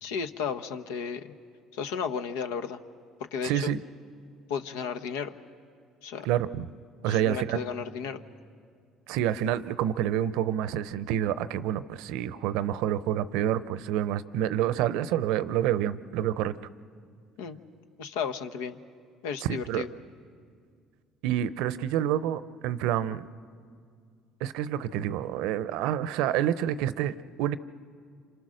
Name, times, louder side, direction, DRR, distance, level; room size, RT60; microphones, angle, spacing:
voice 1, 0.0-1.3 1.7-2.8 3.2-3.7 4.5-5.4 6.0-6.3 7.1-8.2 17.4-17.6 18.0-18.8 19.2-19.9, left 6 dB, 80° left, 8 dB, 1.0 m, -34 dB
voice 2, 3.4-3.8 6.2-6.6 7.0-7.6 9.1-16.5 19.5-19.8 21.2-23.3 24.4-27.6, right 11 dB, 75° right, 15 dB, 0.7 m, -28 dB
27.5 x 26.5 x 6.5 m, 2.2 s
hypercardioid pair, 70°, 0 cm